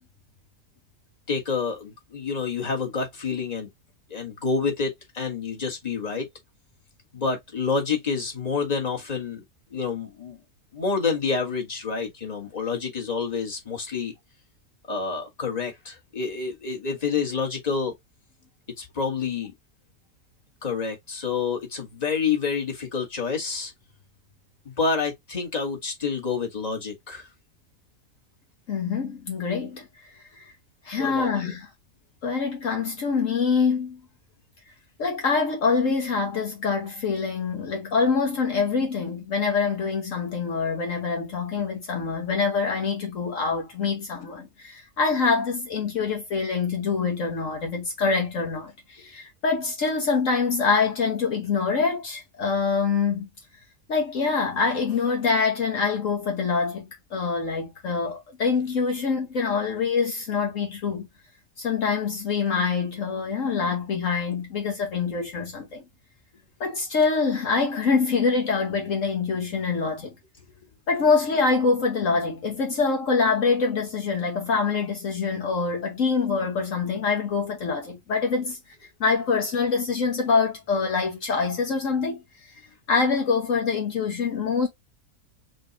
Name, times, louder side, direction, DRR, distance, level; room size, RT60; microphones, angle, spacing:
voice 1, 1.3-3.7 4.1-6.3 7.1-9.4 9.7-10.4 10.7-14.1 14.9-17.9 18.8-19.5 20.6-23.7 24.6-27.3 31.0-31.5, left 5 dB, 30° left, 1.6 m, -28 dB
voice 2, 28.7-30.1 30.3-30.5 30.8-31.7 32.2-34.0 35.0-53.3 53.9-61.1 61.6-65.8 66.6-70.2 70.9-78.6 79.0-82.2 82.9-84.7, left 5 dB, 65° left, 1.4 m, -25 dB
6.2 x 2.5 x 2.9 m
omnidirectional pair, 1.5 m